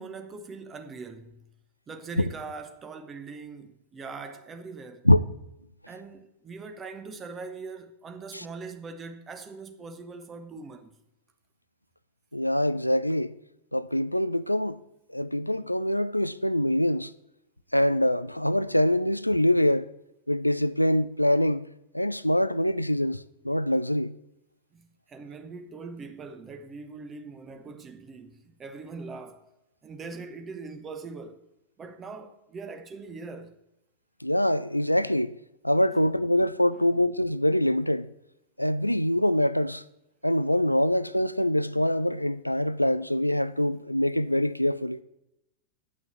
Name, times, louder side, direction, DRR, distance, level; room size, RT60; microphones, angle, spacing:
voice 1, 0.0-1.4 1.9-5.1 5.9-10.9 24.7-29.5 29.8-31.4 31.8-33.5 35.9-36.0 36.7-36.8, right 4 dB, 20° right, 1.2 m, -41 dB
voice 2, 12.3-13.3 13.7-14.8 15.1-17.1 17.7-19.9 20.3-21.7 21.9-24.1 34.2-35.4 35.6-38.1 38.6-39.8 40.2-45.0, left 1 dB, 90° left, 0.3 m, -24 dB
9.2 x 6.0 x 7.9 m
figure-of-eight pair, 90°, 0 cm